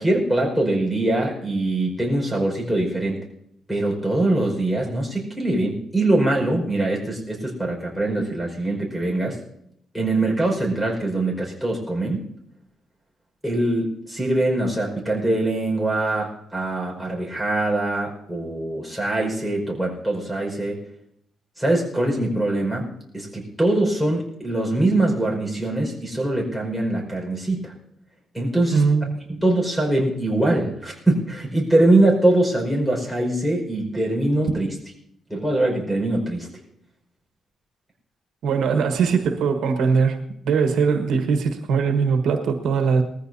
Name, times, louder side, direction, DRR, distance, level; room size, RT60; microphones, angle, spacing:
voice 1, 0.0-3.2 3.7-9.4 9.9-12.2 13.4-20.8 21.6-27.7 28.3-28.8 29.3-34.7 35.3-36.5, right 2 dB, 5° left, 1 dB, 5.3 m, -23 dB
voice 2, 28.7-29.1 38.4-43.0, right 5 dB, 85° right, 5 dB, 1.4 m, -21 dB
20.0 x 14.5 x 2.8 m, 0.75 s
cardioid pair, 110°, 0 cm